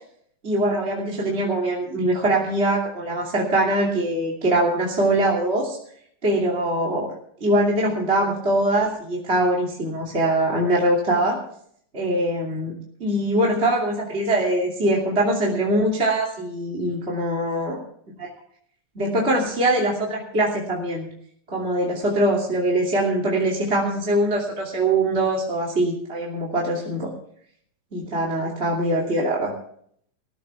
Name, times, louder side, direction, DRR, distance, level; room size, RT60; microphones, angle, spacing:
voice 1, 0.4-5.8 6.2-7.1 7.4-11.4 11.9-17.8 18.2-18.3 18.9-21.1 21.5-27.1 27.9-29.5, right 1 dB, 20° right, -3 dB, 2.7 m, -22 dB
20.0 x 14.0 x 3.6 m, 0.64 s
omnidirectional pair, 3.6 m